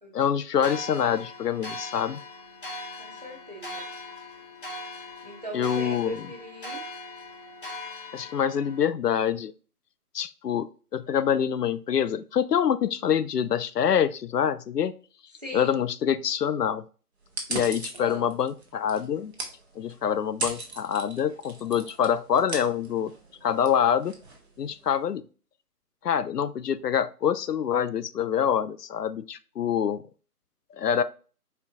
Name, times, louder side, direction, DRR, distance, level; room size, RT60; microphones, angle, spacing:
voice 1, 0.1-2.2 5.5-6.3 8.1-9.5 10.1-14.9 15.5-16.8 17.5-19.3 19.8-23.1 23.4-24.1 24.6-25.2 26.0-30.0 30.7-31.0, left 8 dB, 80° left, 14 dB, 0.5 m, -26 dB
sound 1, 0.6-8.8, left 2 dB, 35° left, 0.9 m, -40 dB
voice 2, 3.0-3.8 5.2-6.8 13.0-13.2 15.4-15.8 17.9-18.3, right 1 dB, 25° right, 0 dB, 0.7 m, -40 dB
sound 2, 17.2-25.0, right 2 dB, 45° right, 1.0 m, -39 dB
4.3 x 4.0 x 2.5 m, 0.37 s
figure-of-eight pair, 160°, 47 cm